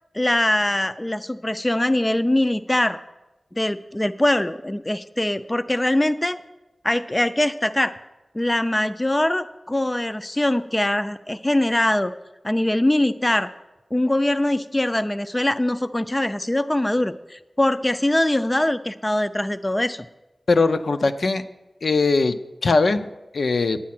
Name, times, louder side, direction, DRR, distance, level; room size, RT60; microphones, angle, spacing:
voice 1, 0.1-3.0 3.6-6.4 6.8-7.9 8.3-12.1 12.4-13.5 13.9-20.1, left 1 dB, 20° left, 12 dB, 0.4 m, -22 dB
voice 2, 20.5-21.4 21.8-22.3 22.6-23.1 23.3-23.8, left 3 dB, 70° left, 9 dB, 0.6 m, -20 dB
9.7 x 8.4 x 5.9 m, 1.0 s
wide cardioid pair, 80°, 0 cm